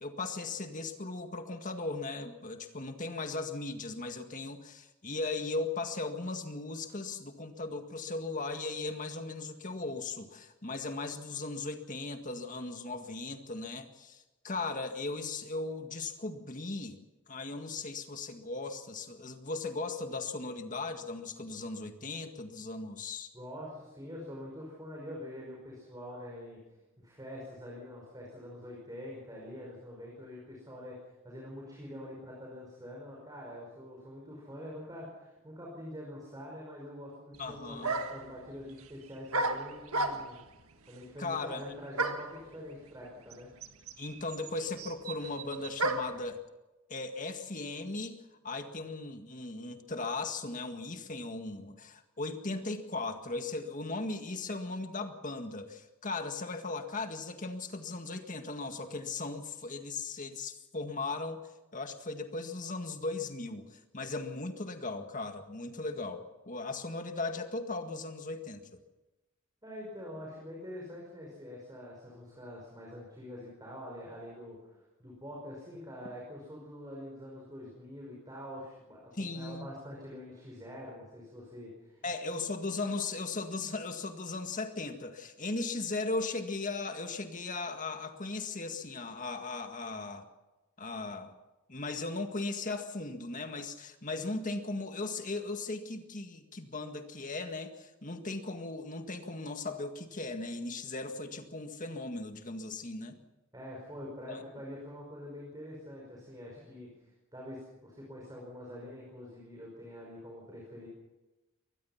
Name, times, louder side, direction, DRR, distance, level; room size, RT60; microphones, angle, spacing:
voice 1, 0.0-17.0 17.3-23.3 37.4-37.9 41.2-41.6 44.0-46.4 46.9-48.2 48.4-61.4 61.7-68.8 79.1-79.7 82.0-90.3 90.8-91.4 91.7-103.2 104.3-104.4, left 3 dB, 40° left, 6 dB, 1.9 m, -37 dB
voice 2, 23.3-26.6 27.0-40.4 40.9-43.5 69.6-82.1 103.5-110.9, left 1 dB, 20° right, -2 dB, 5.4 m, -45 dB
sound 1, 37.3-37.4 37.8-38.3 39.3-40.5 42.0-42.4 43.3-43.4 43.6-46.2, right 2 dB, 85° right, 1.7 m, -33 dB
23.5 x 19.5 x 5.9 m, 1.1 s
head